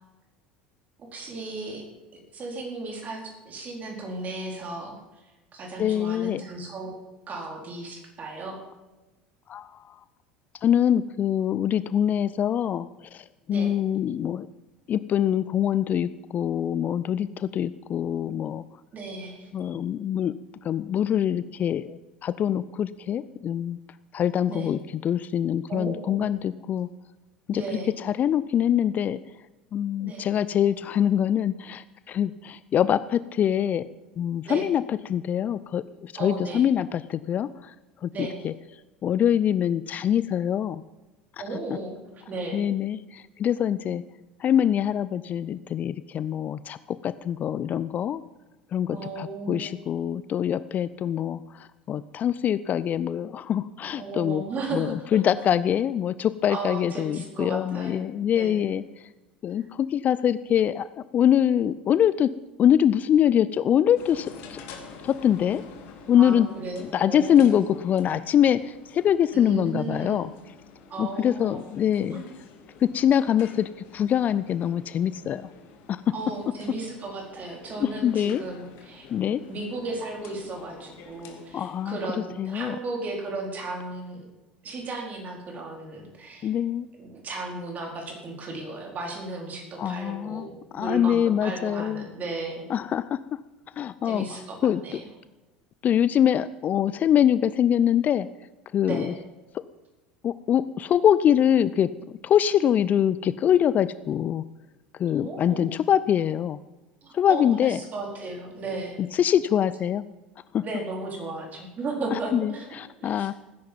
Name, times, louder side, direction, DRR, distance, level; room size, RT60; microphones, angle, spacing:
voice 1, 1.1-1.8 2.1-5.0 5.5-6.9 7.3-8.6 13.5-13.8 18.9-19.5 24.5-24.7 25.7-26.3 27.5-27.9 30.0-30.3 34.5-34.7 36.1-36.7 38.1-38.4 41.4-42.6 48.9-49.7 53.9-55.2 56.5-58.7 66.1-67.5 69.3-70.2 70.9-71.6 72.1-72.3 76.1-79.1 79.5-84.3 84.6-86.5 87.0-92.7 94.0-94.6 94.8-95.0 98.9-99.2 105.2-105.8 107.0-109.0 110.6-112.7 113.0-113.3, right 3 dB, 35° right, 1 dB, 4.4 m, -35 dB
voice 2, 5.8-6.4 9.5-9.9 10.6-14.5 14.9-18.6 19.5-20.3 20.6-23.8 24.1-26.9 27.5-27.6 28.0-29.2 29.7-33.8 34.2-37.7 38.0-38.5 39.0-40.8 42.5-44.0 44.4-46.8 47.0-48.2 48.7-54.4 54.7-58.8 59.4-60.9 61.1-62.3 62.6-64.6 65.0-65.6 66.1-66.5 66.8-70.3 71.0-72.2 72.8-75.5 75.9-76.0 77.8-78.4 79.1-79.4 81.5-82.0 82.4-82.8 86.4-86.9 89.8-90.5 90.7-92.1 92.7-93.2 93.8-95.0 95.8-98.3 98.7-99.1 100.2-101.9 102.2-104.4 105.0-106.6 107.1-107.8 109.1-110.0 110.5-110.6 112.1-113.3, left 9 dB, 35° left, 16 dB, 0.5 m, -24 dB
sound 1, 63.9-81.8, left 5 dB, 50° left, 2.3 m, -48 dB
18.5 x 10.5 x 5.4 m, 1.1 s
figure-of-eight pair, 70°, 5 cm